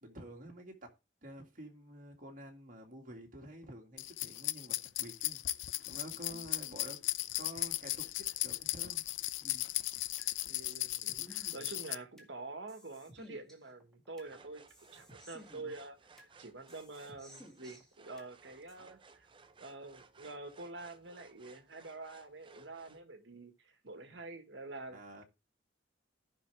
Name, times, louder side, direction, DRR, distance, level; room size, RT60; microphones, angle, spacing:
voice 1, 0.0-0.9 1.2-5.4 5.9-7.0 7.4-8.1 8.4-9.0 24.1-24.2 24.9-25.2, right 1 dB, 45° right, 2.1 m, -49 dB
sound 1, 4.0-11.9, left 16 dB, 85° left, 0.4 m, -37 dB
sound 2, 9.4-10.3 10.7-12.3 12.7-14.3 14.7-16.3 16.7-18.3 18.7-18.8, equal, 5° left, 2.0 m, -56 dB
voice 2, 10.5-19.3 19.6-25.2, right 3 dB, 70° right, 1.5 m, -47 dB
sound 3, 14.2-23.0, right 4 dB, 25° right, 0.6 m, -60 dB
14.5 x 5.8 x 3.3 m
head